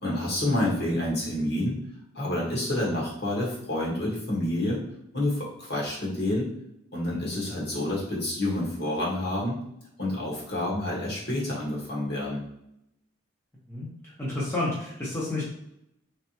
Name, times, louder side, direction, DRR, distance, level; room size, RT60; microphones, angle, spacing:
voice 1, 0.0-1.8 2.1-4.8 5.1-6.5 6.9-9.6 10.0-12.4, left 1 dB, 50° left, -5 dB, 1.5 m, -28 dB
voice 2, 13.7-15.4, left 2 dB, 10° left, -7 dB, 0.7 m, -31 dB
3.6 x 3.4 x 2.9 m, 0.80 s
head